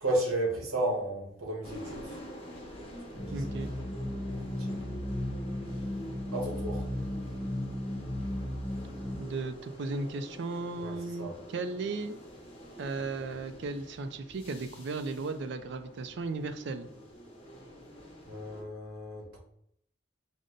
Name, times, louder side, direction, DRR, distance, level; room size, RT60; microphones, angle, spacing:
voice 1, 0.0-2.2 3.1-3.6 4.3-4.8 6.3-6.8 10.8-11.3 18.3-19.4, right 1 dB, 80° right, -1 dB, 1.3 m, -33 dB
sound 1, 1.6-18.6, equal, 30° left, 1.0 m, -47 dB
sound 2, 3.2-9.2, left 1 dB, 5° left, 0.6 m, -35 dB
voice 2, 3.3-3.7 9.2-12.2 12.8-16.9, right 3 dB, 55° right, 9 dB, 0.4 m, -35 dB
5.0 x 2.1 x 3.8 m, 0.73 s
head